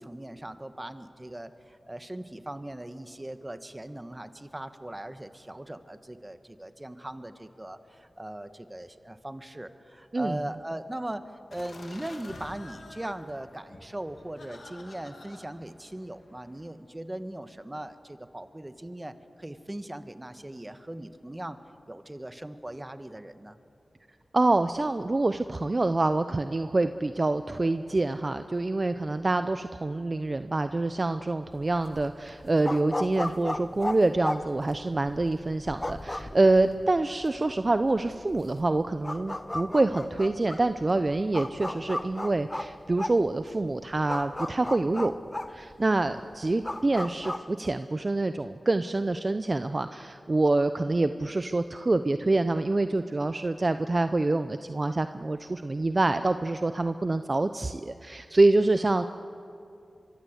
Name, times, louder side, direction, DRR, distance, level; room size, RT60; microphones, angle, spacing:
voice 1, 0.0-21.6 21.9-23.6 46.1-46.2, right 1 dB, 20° right, 10 dB, 1.5 m, -39 dB
sound 1, 11.5-16.7, left 2 dB, 80° left, 3.1 m, -49 dB
voice 2, 24.3-45.1 45.5-59.0, right 2 dB, 40° right, 10 dB, 0.7 m, -26 dB
sound 2, 31.5-47.4, left 1 dB, 25° left, 1.1 m, -36 dB
25.0 x 23.5 x 8.2 m, 2.5 s
cardioid pair, 50°, 0 cm